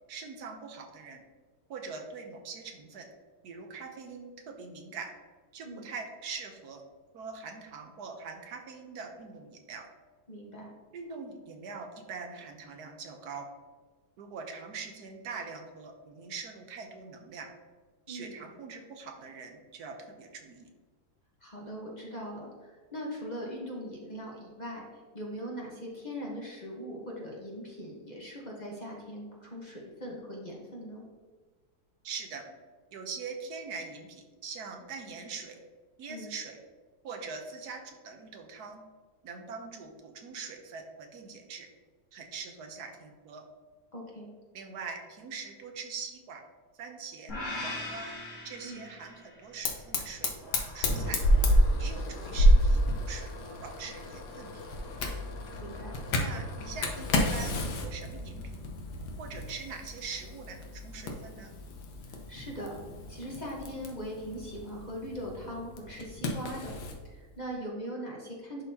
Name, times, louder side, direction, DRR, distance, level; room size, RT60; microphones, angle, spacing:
voice 1, 0.1-1.2 1.7-3.1 3.4-5.1 5.5-6.8 7.1-9.8 10.9-13.5 14.2-17.5 18.1-20.7 32.0-32.4 32.9-35.6 36.0-36.6 37.0-38.8 39.2-41.7 42.1-43.4 44.5-46.4 46.7-47.3 47.6-48.1 48.4-51.2 51.8-55.0 56.2-58.7 59.2-61.5, right 5 dB, 75° right, 4 dB, 1.3 m, -43 dB
voice 2, 10.3-10.7 18.1-18.3 21.4-24.9 25.1-31.0 36.1-36.3 43.9-44.3 48.6-48.9 55.6-56.0 62.1-62.8 63.1-66.7 67.0-68.6, equal, 30° left, -3 dB, 1.1 m, -40 dB
sound 1, 47.3-49.5, left 2 dB, 50° left, 2.0 m, -39 dB
Fire, 49.6-67.0, equal, 85° left, 1.5 m, -30 dB
11.0 x 4.1 x 2.8 m, 1.4 s
omnidirectional pair, 1.7 m